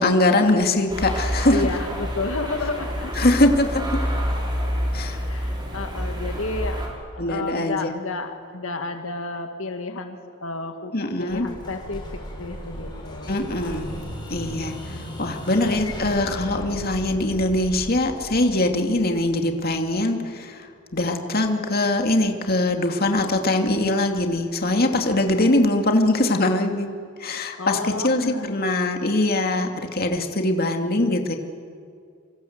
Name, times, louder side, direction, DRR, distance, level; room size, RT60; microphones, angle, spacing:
voice 1, 0.0-1.6 3.2-4.0 4.9-5.2 7.2-7.9 10.9-11.5 13.3-13.9 14.3-20.7 20.9-26.9 27.2-31.4, left 1 dB, 45° left, 4 dB, 2.3 m, -22 dB
sound 1, 0.9-6.9, equal, 20° right, 5.6 m, -27 dB
voice 2, 1.5-3.3 5.3-10.9 11.2-12.0 12.4-13.3 27.6-28.7, left 3 dB, 75° left, 5 dB, 2.0 m, -31 dB
Explosion, 11.3-20.0, equal, 20° left, 6.8 m, -37 dB
27.5 x 26.0 x 8.0 m, 2.3 s
head